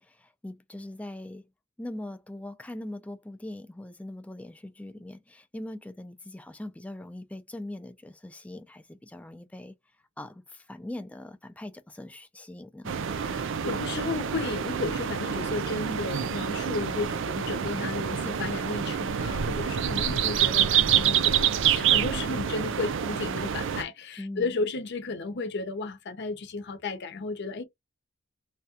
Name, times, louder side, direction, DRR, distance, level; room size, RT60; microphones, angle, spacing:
voice 1, 0.0-1.5 1.8-9.7 10.2-12.9 24.2-24.5, left 1 dB, 5° left, 0.3 m, -41 dB
sound 1, 12.8-23.8, right 8 dB, 65° right, 0.4 m, -27 dB
voice 2, 13.2-27.6, left 3 dB, 55° left, 0.6 m, -33 dB
3.3 x 2.3 x 2.7 m
head